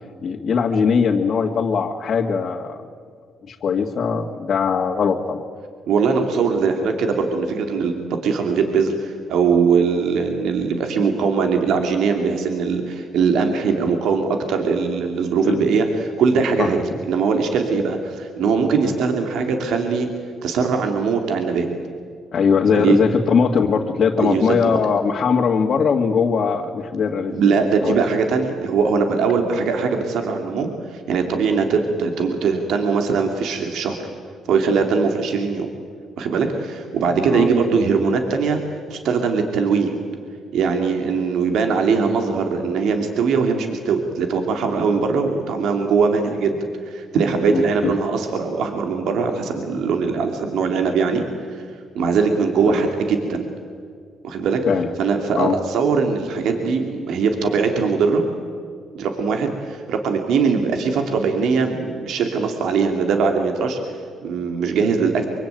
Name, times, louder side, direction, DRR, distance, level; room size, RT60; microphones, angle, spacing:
voice 1, 0.2-2.8 3.5-5.4 15.4-15.6 16.6-16.7 18.8-18.9 22.3-27.3 27.8-28.0 37.3-37.5 47.5-47.9 52.8-52.9 54.7-54.9 55.4-55.6, left 6 dB, 55° left, -1 dB, 2.0 m, -20 dB
voice 2, 5.9-20.1 20.4-21.7 22.7-23.0 24.2-24.8 27.3-34.0 34.5-35.7 36.2-40.0 40.5-51.2 51.5-51.6 51.9-53.5 54.2-54.6 55.0-58.2 58.9-65.3, right 5 dB, 80° right, 4 dB, 2.8 m, -21 dB
25.0 x 24.0 x 9.2 m, 2.1 s
cardioid pair, 90°, 0 cm